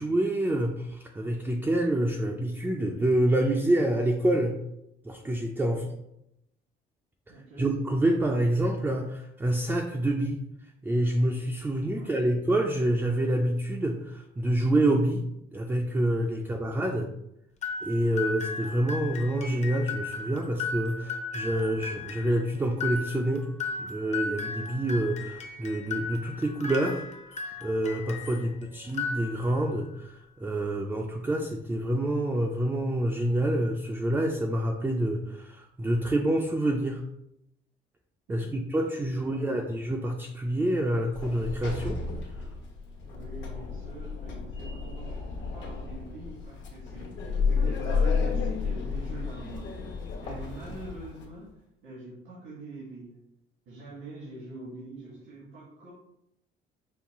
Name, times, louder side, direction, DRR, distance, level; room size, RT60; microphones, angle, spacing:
voice 1, 0.0-4.6 5.0-5.8 7.6-10.4 10.8-15.2 15.5-17.1 17.8-23.5 23.8-27.1 27.6-37.0 38.3-42.0, right 1 dB, 10° right, 1 dB, 0.3 m, -27 dB
voice 2, 7.3-7.7 11.9-12.3 16.4-16.9 28.3-28.7 38.3-38.6 39.1-39.7 43.0-49.7 50.2-51.5 51.8-53.2 53.6-55.9, right 2 dB, 90° right, -7 dB, 1.6 m, -45 dB
sound 1, 17.6-28.5 28.8-29.7, left 4 dB, 35° left, 0.6 m, -36 dB
Sliding door, 41.1-51.3, left 5 dB, 70° left, 1.0 m, -32 dB
5.4 x 2.3 x 3.5 m, 0.82 s
cardioid pair, 140°, 20 cm